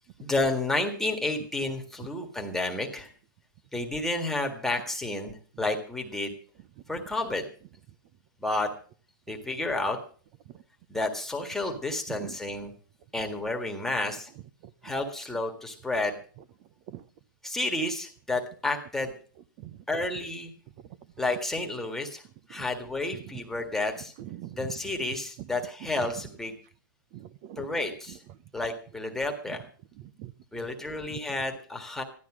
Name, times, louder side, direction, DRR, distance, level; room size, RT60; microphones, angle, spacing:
voice 1, 0.2-3.1 3.7-6.3 6.9-7.5 8.4-8.7 9.3-10.0 10.9-12.7 13.1-14.3 14.8-16.1 17.4-19.1 19.9-20.5 21.2-22.2 22.5-24.1 24.6-26.5 27.6-28.2 28.5-29.6 30.5-32.0, left 2 dB, 5° left, 2 dB, 1.7 m, -31 dB
voice 2, 24.2-24.7 25.4-25.5 27.1-27.7 28.1-28.2 30.0-30.6 31.1-31.2, right 14 dB, 35° right, 17 dB, 0.7 m, -42 dB
15.0 x 12.0 x 6.2 m, 0.43 s
hypercardioid pair, 150°, 11 cm